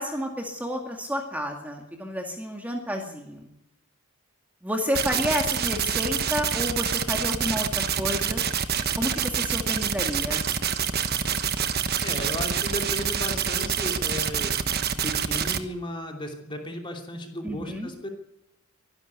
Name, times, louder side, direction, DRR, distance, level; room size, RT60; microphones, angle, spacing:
voice 1, 0.0-3.5 4.6-8.4 9.0-10.5 17.4-17.9, equal, 5° right, 2 dB, 2.2 m, -30 dB
sound 1, 4.9-15.6, right 7 dB, 45° right, 1.1 m, -26 dB
voice 2, 12.0-14.6 15.0-18.1, left 1 dB, 20° left, 2 dB, 3.0 m, -34 dB
23.5 x 11.5 x 9.6 m, 0.84 s
head